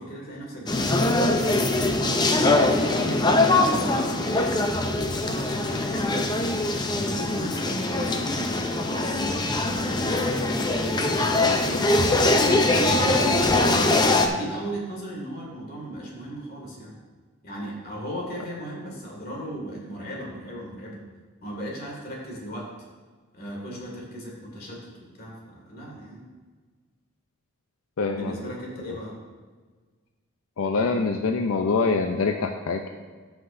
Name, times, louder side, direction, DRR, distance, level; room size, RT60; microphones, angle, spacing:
voice 1, 0.0-2.2 3.0-6.1 6.9-12.0 12.4-13.8 14.2-16.9 17.4-21.0 21.4-22.7 23.3-26.3 28.1-29.2, right 1 dB, 45° left, -2 dB, 2.0 m, -37 dB
sound 1, 0.7-14.3, left 2 dB, 20° left, 0.5 m, -22 dB
voice 2, 28.0-28.3 30.6-32.9, left 4 dB, 80° left, 4 dB, 0.5 m, -24 dB
15.5 x 5.9 x 2.6 m, 1.4 s
head